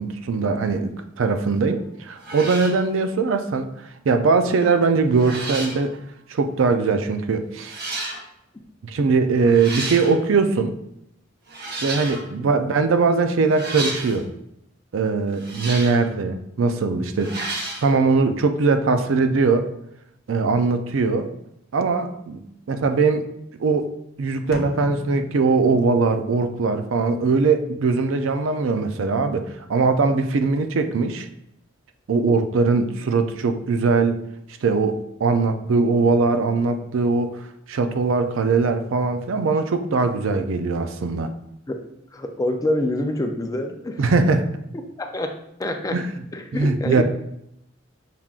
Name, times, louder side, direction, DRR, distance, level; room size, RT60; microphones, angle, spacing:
voice 1, 0.0-3.7 4.1-6.0 6.3-7.7 8.8-10.7 11.8-14.3 14.9-17.3 17.8-19.7 20.3-21.3 21.7-22.4 22.7-23.2 23.6-23.9 24.2-31.3 32.1-34.2 34.6-37.3 37.7-41.3 44.0-44.5 45.9-46.0 46.5-47.0, right 4 dB, 75° right, 7 dB, 0.4 m, -21 dB
sound 1, 1.7-1.9 2.2-2.8 4.5-4.8 5.1-5.8 6.8-6.9 7.6-8.2 9.4-10.2 11.5-12.3 13.5-14.2 15.3-16.1 17.2-17.9, right 2 dB, 50° right, 1.0 m, -32 dB
sound 2, 24.5-26.4, left 1 dB, 50° left, 0.7 m, -36 dB
voice 2, 42.1-44.0 45.1-46.0 46.3-47.0, left 1 dB, 20° left, 4 dB, 0.4 m, -26 dB
5.7 x 3.7 x 2.4 m, 0.78 s
head